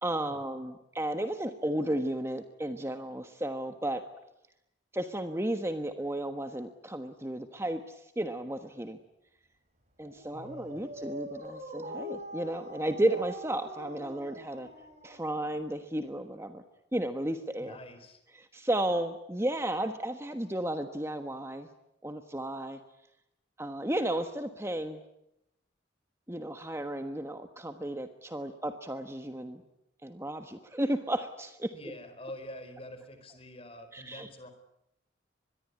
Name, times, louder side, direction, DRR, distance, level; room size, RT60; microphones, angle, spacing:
voice 1, 0.0-4.0 4.9-9.0 10.0-14.7 15.0-16.6 16.9-17.8 18.5-21.7 22.0-22.8 23.6-25.0 26.3-29.6 30.0-31.7 33.9-34.3, right 1 dB, 15° right, 8 dB, 1.3 m, -33 dB
Dog, 10.0-15.7, equal, 35° right, 5.1 m, -44 dB
voice 2, 10.3-10.8 17.6-18.2 31.7-34.5, left 1 dB, 30° left, 9 dB, 4.5 m, -46 dB
24.5 x 22.0 x 9.7 m, 0.84 s
head